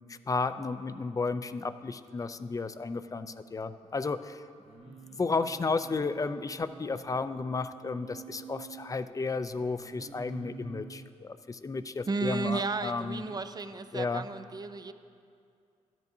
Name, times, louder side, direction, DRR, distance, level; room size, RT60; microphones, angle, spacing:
voice 1, 0.1-4.4 4.9-13.2 13.9-14.2, left 4 dB, 25° left, 12 dB, 0.4 m, -33 dB
Singing, 4.6-7.1 7.7-8.9 9.8-11.1 13.1-13.4, right 5 dB, 50° right, 1.2 m, -48 dB
voice 2, 12.1-14.9, right 3 dB, 30° right, 11 dB, 0.5 m, -33 dB
13.0 x 10.5 x 2.7 m, 2.4 s
cardioid pair, 75°, 13 cm